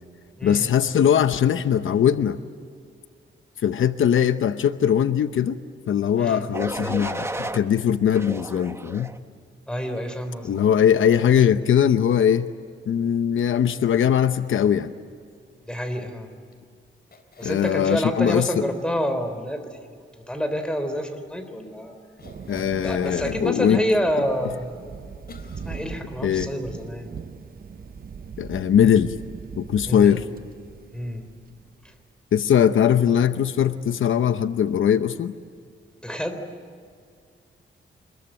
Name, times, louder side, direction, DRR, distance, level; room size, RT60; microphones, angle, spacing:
voice 1, 0.4-2.4 3.6-5.6 5.9-9.1 10.4-12.5 12.9-14.9 17.4-18.6 22.5-23.8 26.2-26.5 28.4-29.1 29.6-30.2 32.3-35.3, left 9 dB, 80° left, 11 dB, 0.9 m, -20 dB
voice 2, 6.2-6.5 9.7-10.5 15.6-16.3 17.4-19.7 20.2-21.9 22.8-24.8 25.6-27.1 29.9-30.2 30.9-31.3 31.8-31.9 36.0-36.4, equal, 5° left, 7 dB, 3.6 m, -28 dB
sound 1, 6.5-7.6 8.1-9.2 9.8-10.1, right 2 dB, 15° right, 1.2 m, -32 dB
sound 2, 10.5-11.7 13.6-14.6 16.5-16.6 17.1-17.9 22.2-23.3 23.8-23.9 25.3-26.3 26.8-26.9 27.2-27.3, left 3 dB, 50° left, 3.9 m, -46 dB
Thunder, 22.2-31.9, right 6 dB, 45° right, 0.9 m, -40 dB
26.0 x 21.5 x 9.1 m, 2.2 s
cardioid pair, 100°, 20 cm